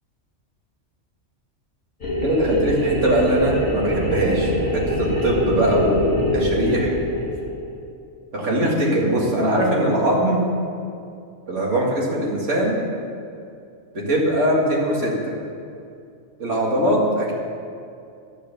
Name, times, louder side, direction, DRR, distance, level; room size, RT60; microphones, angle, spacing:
sound 1, 2.0-7.7, equal, 55° left, 2.3 m, -24 dB
voice 1, 2.2-6.9 8.3-10.4 11.5-12.8 13.9-15.3 16.4-17.3, right 1 dB, 70° right, -3 dB, 2.3 m, -21 dB
12.5 x 6.8 x 6.9 m, 2.5 s
omnidirectional pair, 1.3 m